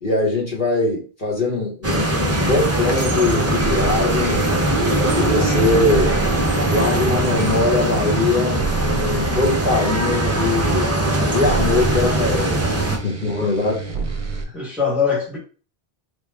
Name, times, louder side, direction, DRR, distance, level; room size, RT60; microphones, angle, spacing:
voice 1, 0.0-4.4 5.0-6.2 6.7-11.0 11.3-12.6 13.0-13.7, left 3 dB, 50° left, 1.4 m, -22 dB
sound 1, 1.8-13.0, right 1 dB, 20° right, 0.5 m, -21 dB
sound 2, 3.2-14.4, right 4 dB, 50° right, 0.8 m, -28 dB
voice 2, 13.2-13.5 14.5-15.4, left 5 dB, ahead, 1.1 m, -23 dB
3.6 x 2.3 x 3.3 m
omnidirectional pair, 1.1 m